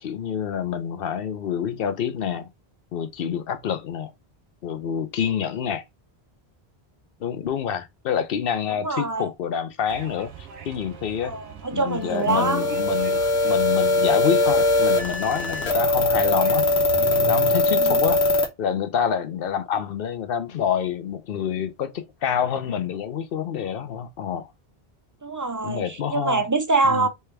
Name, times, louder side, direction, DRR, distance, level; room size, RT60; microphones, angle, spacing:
voice 1, 0.0-2.5 2.9-4.1 4.6-5.8 7.2-11.3 11.7-16.7 17.2-24.5 25.6-26.4 26.8-27.1, left 8 dB, 65° left, 0.8 m, -27 dB
voice 2, 8.8-9.3 11.2-12.8 17.7-18.0 25.2-27.1, right 3 dB, 30° right, 0.4 m, -24 dB
sound 1, 9.9-17.6, right 7 dB, 85° right, 1.1 m, -40 dB
sound 2, 12.3-18.5, left 2 dB, 90° left, 1.2 m, -21 dB
3.4 x 3.3 x 3.2 m
omnidirectional pair, 1.1 m